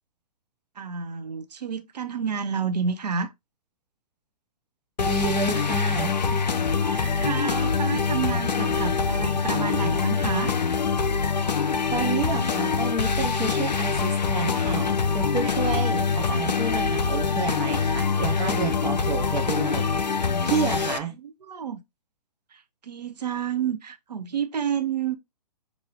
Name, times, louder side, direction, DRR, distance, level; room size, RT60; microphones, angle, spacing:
voice 1, 0.8-3.3 6.8-10.6 21.1-21.8 22.5-25.2, right 7 dB, 75° right, 0.7 m, -30 dB
sound 1, 5.0-21.0, left 5 dB, 90° left, 0.5 m, -24 dB
voice 2, 5.0-6.4 11.9-19.9 20.1-21.1, right 4 dB, 15° right, 0.6 m, -30 dB
6.0 x 2.6 x 3.1 m
figure-of-eight pair, 125°, 21 cm